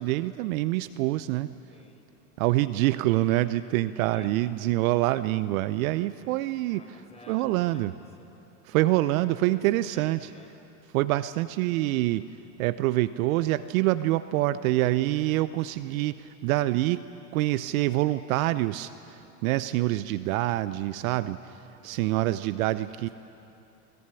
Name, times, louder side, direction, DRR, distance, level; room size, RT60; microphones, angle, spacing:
voice 1, 0.0-1.5 2.4-6.8 7.3-7.9 8.6-10.3 10.9-12.3 12.6-17.0 17.3-23.1, right 16 dB, 65° right, 15 dB, 0.8 m, -26 dB
voice 2, 1.7-2.2 4.1-4.6 6.7-8.3 9.5-10.5 21.6-22.2 22.8-23.1, left 2 dB, 15° left, 2 dB, 4.9 m, -53 dB
21.5 x 20.5 x 10.0 m, 2.8 s
hypercardioid pair, 90°, 44 cm